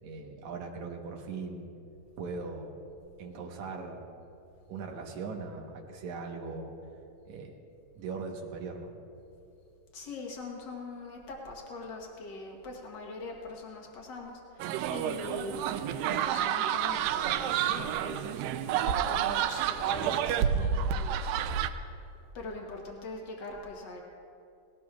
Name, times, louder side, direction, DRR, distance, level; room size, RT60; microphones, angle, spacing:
voice 1, 0.0-1.7 2.2-2.8 3.2-4.1 4.7-6.7 7.3-7.5 8.0-8.9, right 4 dB, 65° right, 1 dB, 2.3 m, -39 dB
voice 2, 9.9-15.8 16.1-18.3 18.8-21.6 22.3-24.0, left 3 dB, 85° left, 0 dB, 0.9 m, -42 dB
sound 1, 14.6-21.7, right 9 dB, 85° right, 2.2 m, -29 dB
19.5 x 17.5 x 2.4 m, 2.7 s
omnidirectional pair, 3.9 m